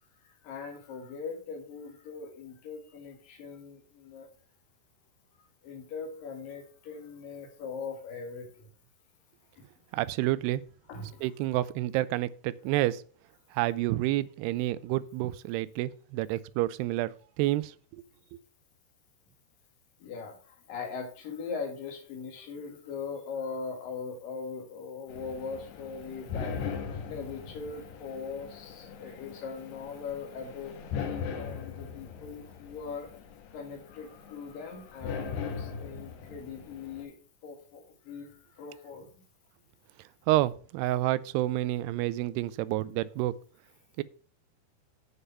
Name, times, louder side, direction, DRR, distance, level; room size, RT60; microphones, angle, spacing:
voice 1, 0.2-4.3 5.6-8.7 9.6-9.7 10.9-11.3 20.0-26.6 27.1-33.1 33.5-37.1 37.4-39.1, left 5 dB, 60° left, 3.6 m, -40 dB
voice 2, 9.9-10.6 11.2-13.0 13.5-18.0 40.3-43.3 44.0-44.1, right 16 dB, 85° right, 2.6 m, -29 dB
sound 1, 25.1-37.0, left 6 dB, 75° left, 3.5 m, -40 dB
9.2 x 6.8 x 5.5 m
omnidirectional pair, 4.8 m